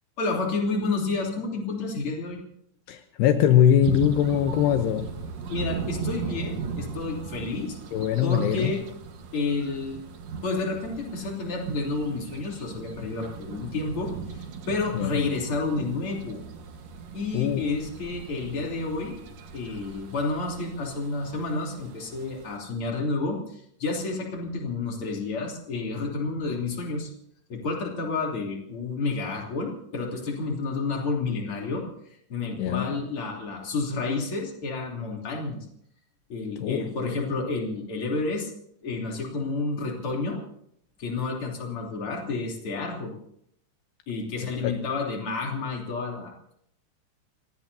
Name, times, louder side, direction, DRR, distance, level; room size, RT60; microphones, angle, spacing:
voice 1, 0.2-2.4 5.5-7.8 8.2-8.8 9.3-10.0 10.4-16.4 17.1-19.2 19.5-27.1 27.5-35.7 36.3-38.5 38.8-40.4 41.0-43.2 44.1-46.5, left 3 dB, 35° left, 3.7 m, -30 dB
voice 2, 2.9-5.1 7.9-8.7 14.9-15.1 17.3-17.6 32.6-32.9 36.6-36.9 44.4-44.7, left 10 dB, 80° left, 2.9 m, -22 dB
sound 1, 3.8-22.6, right 5 dB, 60° right, 2.0 m, -38 dB
29.5 x 17.0 x 2.8 m
omnidirectional pair, 5.0 m